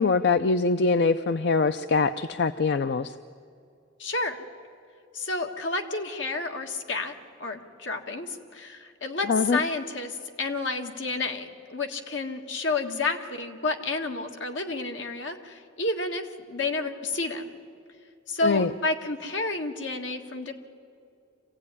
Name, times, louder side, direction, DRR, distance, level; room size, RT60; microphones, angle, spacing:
voice 1, 0.0-3.1 9.3-9.6 18.4-18.7, left 4 dB, 60° left, 11 dB, 0.5 m, -23 dB
voice 2, 4.0-4.4 5.1-7.1 7.4-17.5 18.3-20.5, left 3 dB, 85° left, 4 dB, 1.8 m, -30 dB
25.5 x 16.5 x 9.8 m, 2.4 s
head